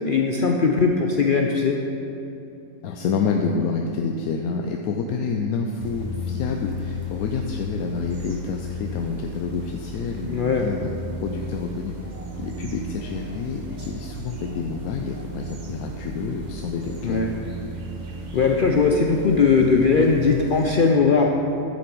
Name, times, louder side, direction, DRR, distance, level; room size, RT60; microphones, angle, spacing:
voice 1, 0.0-1.8 10.3-10.7 17.0-17.3 18.3-21.3, left 5 dB, 60° left, 2 dB, 0.5 m, -19 dB
voice 2, 2.8-11.9 12.4-17.2, left 5 dB, 90° left, 2 dB, 1.1 m, -28 dB
sound 1, 5.8-20.8, left 1 dB, 35° right, 0.9 m, -34 dB
10.0 x 7.3 x 4.6 m, 2.9 s
omnidirectional pair, 1.5 m